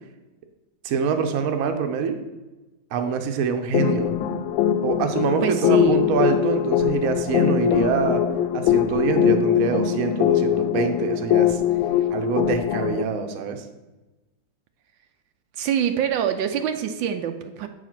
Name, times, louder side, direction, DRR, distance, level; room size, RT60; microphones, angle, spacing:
voice 1, 0.8-2.2 2.9-4.2 4.8-8.2 8.5-11.6 12.1-13.6, right 6 dB, 55° right, 6 dB, 1.1 m, -25 dB
sound 1, 3.7-13.0, left 10 dB, 85° left, 1.3 m, -22 dB
voice 2, 5.4-6.1 15.6-17.7, right 9 dB, 80° right, 7 dB, 1.3 m, -25 dB
7.7 x 4.9 x 5.9 m, 1.1 s
omnidirectional pair, 2.1 m